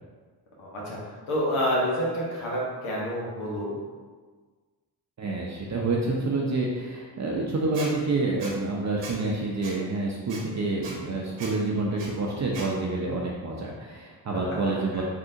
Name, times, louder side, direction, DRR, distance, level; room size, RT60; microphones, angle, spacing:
voice 1, 0.6-3.8 14.5-14.6 14.9-15.0, equal, 80° left, -4 dB, 1.1 m, -28 dB
voice 2, 5.2-15.0, right 3 dB, 35° right, -2 dB, 0.6 m, -28 dB
Squeak, 7.7-7.9 8.4-8.5 9.0-9.2 9.6-9.7 10.3-10.4 10.8-10.9 11.4-11.5 12.0-12.1 12.5-12.7, right 3 dB, 65° right, 0.9 m, -38 dB
3.6 x 2.7 x 2.5 m, 1.4 s
supercardioid pair, 45°, 48 cm